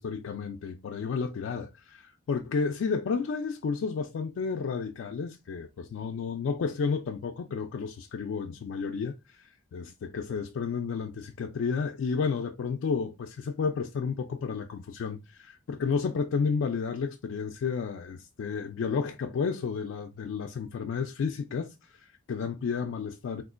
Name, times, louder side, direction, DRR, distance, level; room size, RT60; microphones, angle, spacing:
voice 1, 0.0-23.4, left 5 dB, 75° left, 0.3 m, -32 dB
3.6 x 2.4 x 2.4 m
head